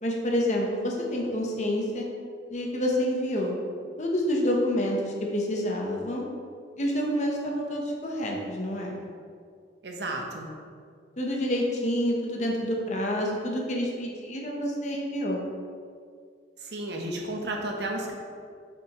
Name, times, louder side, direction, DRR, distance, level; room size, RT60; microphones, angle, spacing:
voice 1, 0.0-2.1 2.5-3.5 4.0-6.2 6.8-9.0 11.2-15.4, equal, 40° left, -1 dB, 0.9 m, -28 dB
voice 2, 9.8-10.5 16.6-18.1, right 1 dB, 65° right, 1 dB, 1.0 m, -32 dB
6.8 x 6.1 x 3.1 m, 2.1 s
head